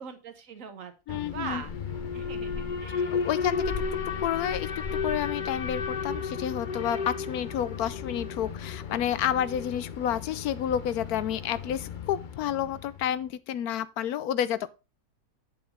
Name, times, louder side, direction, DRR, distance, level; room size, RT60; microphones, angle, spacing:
voice 1, 0.0-1.7 2.1-3.2, right 6 dB, 55° right, 1.5 m, -41 dB
voice 2, 1.1-1.6 3.1-3.6 4.2-14.7, left 10 dB, 70° left, 1.1 m, -30 dB
Alarm, 1.1-13.1, left 5 dB, 45° left, 0.6 m, -34 dB
8.7 x 7.0 x 3.6 m
omnidirectional pair, 1.7 m